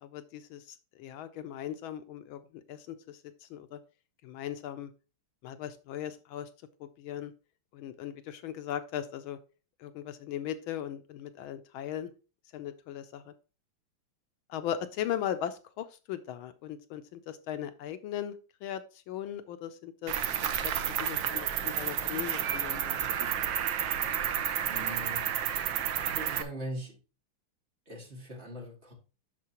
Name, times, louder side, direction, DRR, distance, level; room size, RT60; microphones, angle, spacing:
voice 1, 0.0-2.4 2.7-3.8 4.2-4.9 5.4-6.5 6.8-7.3 7.7-9.4 9.8-12.1 12.5-13.3 14.5-18.4 18.6-20.3 20.6-20.7 21.0-23.1, left 10 dB, 80° left, 1.4 m, -38 dB
Cricket, 20.1-26.4, right 9 dB, 70° right, 1.4 m, -31 dB
voice 2, 24.7-25.3 25.8-27.0 27.9-28.9, right 1 dB, 30° right, 2.4 m, -41 dB
9.4 x 6.6 x 2.9 m
omnidirectional pair, 2.3 m